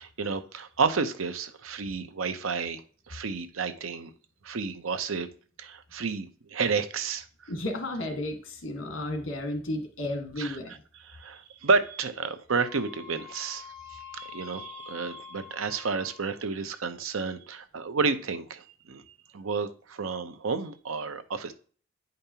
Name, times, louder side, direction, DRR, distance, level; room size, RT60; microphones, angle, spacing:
voice 1, 0.0-2.8 3.1-4.1 4.4-5.3 5.6-7.2 10.4-10.6 11.1-19.0 19.3-21.5, right 4 dB, 90° right, 10 dB, 0.7 m, -31 dB
voice 2, 7.5-10.8, left 1 dB, 75° left, 5 dB, 1.6 m, -33 dB
Wind instrument woodwind instrument, 12.5-16.4, left 8 dB, ahead, 3.2 m, -46 dB
9.2 x 5.2 x 2.8 m, 0.42 s
head